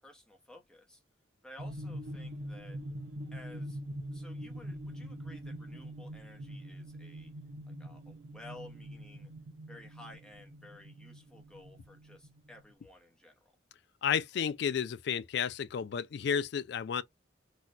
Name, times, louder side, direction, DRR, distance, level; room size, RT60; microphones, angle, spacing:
voice 1, 0.0-1.0 1.4-2.8 3.3-3.8 4.1-7.3 7.6-9.3 9.7-13.5, left 1 dB, 5° left, 0.8 m, -54 dB
sound 1, 1.6-12.7, equal, 75° right, 0.7 m, -44 dB
voice 2, 14.0-17.0, left 7 dB, 60° left, 0.3 m, -32 dB
4.1 x 2.2 x 2.5 m
head